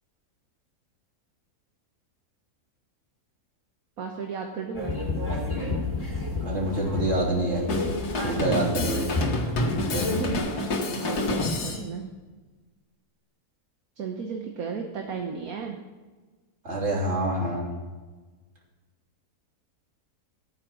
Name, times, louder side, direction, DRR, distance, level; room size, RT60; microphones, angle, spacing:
voice 1, 4.0-4.9 10.0-10.7 11.0-12.1 14.0-15.8, right 5 dB, 65° right, 3 dB, 1.6 m, -34 dB
sound 1, 4.7-10.4, left 2 dB, 20° left, 3.0 m, -30 dB
voice 2, 6.4-7.7 8.2-9.1 9.8-10.1 16.6-17.7, right 1 dB, 45° right, -2 dB, 3.3 m, -26 dB
Drum kit, 7.7-11.9, left 2 dB, 80° left, 2.1 m, -28 dB
14.0 x 9.1 x 6.1 m, 1.3 s
omnidirectional pair, 1.7 m